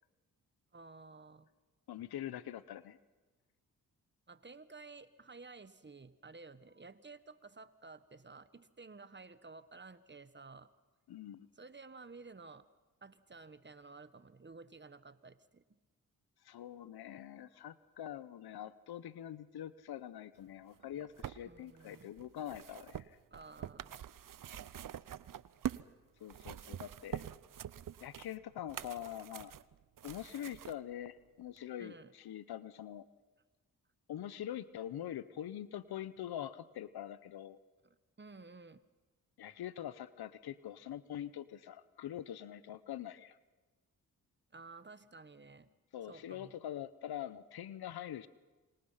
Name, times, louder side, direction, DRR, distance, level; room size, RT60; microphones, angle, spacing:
voice 1, 0.7-1.5 4.3-10.7 11.6-12.6 13.0-15.6 21.4-22.1 23.3-24.0 31.8-32.1 37.8-38.8 44.5-45.7 46.0-46.6, right 3 dB, 30° right, 13 dB, 1.4 m, -53 dB
voice 2, 1.9-3.0 11.1-11.5 16.4-23.2 26.2-27.2 28.0-29.5 30.0-33.1 34.1-37.6 39.4-43.4 45.9-48.3, left 11 dB, 80° left, 16 dB, 1.0 m, -44 dB
sound 1, 20.8-25.9 26.2-30.8 31.6-31.7, right 10 dB, 60° right, 0.8 m, -45 dB
28.0 x 25.0 x 5.8 m, 1.2 s
cardioid pair, 50°, 37 cm